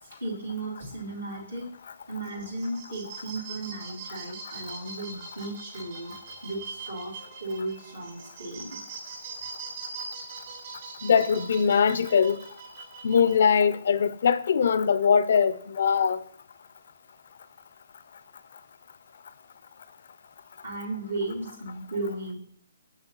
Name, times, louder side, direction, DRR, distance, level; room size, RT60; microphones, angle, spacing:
voice 1, 0.0-1.7 2.1-6.1 6.4-8.8 20.6-22.4, right 2 dB, 85° right, 3.1 m, -35 dB
sound 1, 2.2-13.5, right 4 dB, 50° right, 2.5 m, -42 dB
voice 2, 11.0-12.4 13.0-16.2, left 6 dB, 60° left, 0.3 m, -22 dB
6.7 x 6.7 x 2.9 m
figure-of-eight pair, 135°, 0 cm